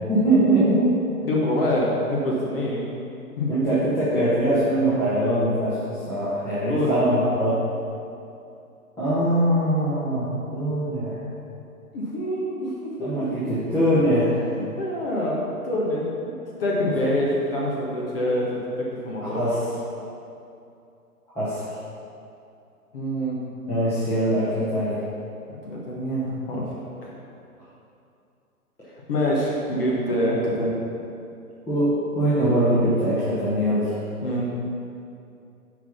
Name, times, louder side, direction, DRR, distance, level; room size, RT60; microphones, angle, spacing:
voice 1, 0.1-1.1 3.5-7.6 9.0-11.3 13.0-14.4 19.2-19.6 21.3-21.8 23.7-25.0 31.7-34.0, right 1 dB, 5° left, -14 dB, 1.0 m, -22 dB
voice 2, 1.2-2.9 3.4-3.5 6.7-7.0 11.9-12.7 13.0-13.6 14.5-16.3 16.6-19.6 22.9-23.4 25.6-26.7 27.0-27.1 29.1-30.8 34.2-34.5, equal, 40° left, -5 dB, 1.5 m, -25 dB
7.6 x 5.0 x 5.9 m, 2.6 s
figure-of-eight pair, 130°, 45 cm